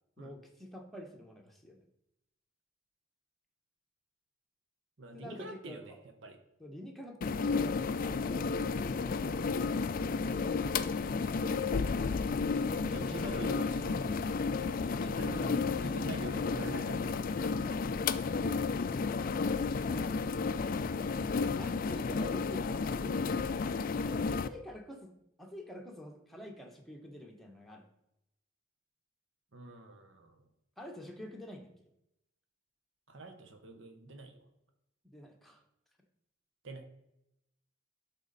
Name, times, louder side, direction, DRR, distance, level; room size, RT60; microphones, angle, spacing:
voice 1, 0.2-1.8 5.1-6.0 6.6-10.5 19.9-20.1 21.5-23.3 24.0-27.8 30.8-31.7 35.1-35.6, left 1 dB, ahead, 2 dB, 1.1 m, -48 dB
voice 2, 5.0-6.0 6.2-6.4 12.6-14.3 14.9-17.3 29.5-30.3 33.1-34.4 36.6-36.8, right 2 dB, 65° right, 5 dB, 1.1 m, -45 dB
sound 1, 7.2-24.5, left 4 dB, 45° left, 0.3 m, -32 dB
12.0 x 4.2 x 4.1 m, 0.84 s
head